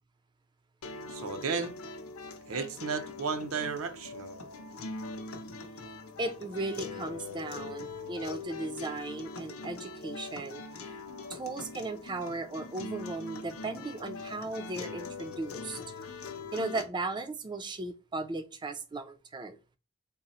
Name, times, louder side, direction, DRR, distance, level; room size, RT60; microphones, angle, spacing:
sound 1, 0.8-16.8, left 3 dB, 85° left, 0.6 m, -42 dB
voice 1, 1.1-1.8 2.5-4.4, right 5 dB, 75° right, 0.5 m, -34 dB
voice 2, 6.2-10.6 11.3-15.8 16.5-19.6, right 2 dB, 20° right, 0.4 m, -36 dB
3.8 x 2.0 x 4.0 m
head